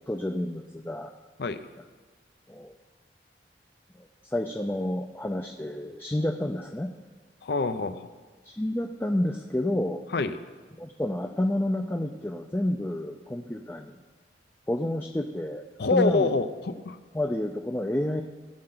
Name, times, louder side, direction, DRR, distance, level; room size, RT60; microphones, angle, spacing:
voice 1, 0.1-1.1 2.5-2.8 3.9-4.1 4.3-6.9 8.4-10.0 10.8-14.0 14.7-16.3 17.1-18.2, left 1 dB, 10° left, 3 dB, 0.4 m, -29 dB
voice 2, 7.4-8.0 10.1-10.4 15.8-17.0, left 3 dB, 65° left, 10 dB, 0.6 m, -26 dB
18.5 x 7.6 x 3.9 m, 1.4 s
head